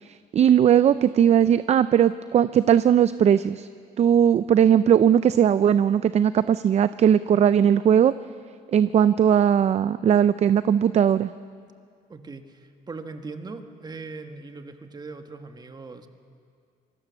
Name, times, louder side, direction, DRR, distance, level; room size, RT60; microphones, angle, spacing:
voice 1, 0.1-3.7 4.0-8.1 8.7-11.3, right 9 dB, 40° right, 14 dB, 0.5 m, -19 dB
voice 2, 12.1-16.1, right 3 dB, 25° right, 6 dB, 1.7 m, -40 dB
25.5 x 19.5 x 7.1 m, 2.2 s
cardioid pair, 110°, 17 cm